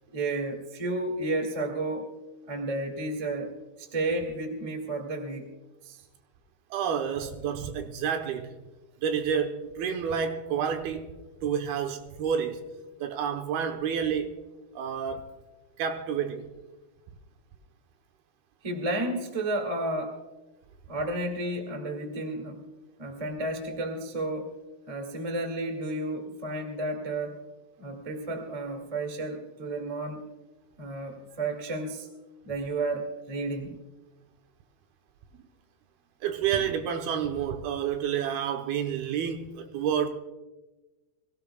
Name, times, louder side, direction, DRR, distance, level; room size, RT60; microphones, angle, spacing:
voice 1, 0.1-2.1 2.5-3.5 3.9-5.5 5.8-6.0 18.6-20.2 20.9-22.6 23.0-24.5 24.9-27.4 27.8-30.2 30.8-32.1 32.4-33.8, right 2 dB, 40° right, 0.5 m, -32 dB
voice 2, 6.7-8.5 9.0-11.1 11.4-12.6 13.0-14.3 14.8-15.3 15.8-16.5 36.2-40.1, right 8 dB, 75° right, 2.7 m, -29 dB
24.0 x 17.0 x 2.3 m
omnidirectional pair, 4.8 m